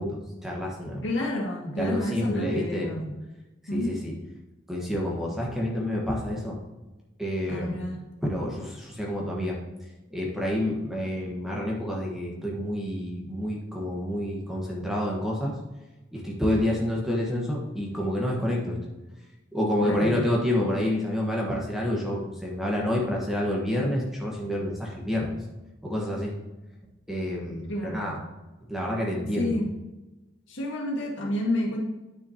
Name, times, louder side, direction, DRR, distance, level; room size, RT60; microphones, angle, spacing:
voice 1, 0.0-1.0 1.8-2.9 3.7-4.1 4.7-6.6 7.2-7.8 8.2-9.6 10.1-15.5 16.1-18.8 19.5-25.3 25.8-26.3 27.1-28.1 28.7-29.5, left 1 dB, ahead, -3 dB, 1.3 m, -28 dB
voice 2, 1.0-3.1 3.7-4.0 7.5-8.0 19.8-20.2 27.7-28.2 29.3-29.8 30.5-31.8, left 1 dB, 75° left, -1 dB, 2.0 m, -29 dB
9.6 x 6.2 x 2.9 m, 1.1 s
head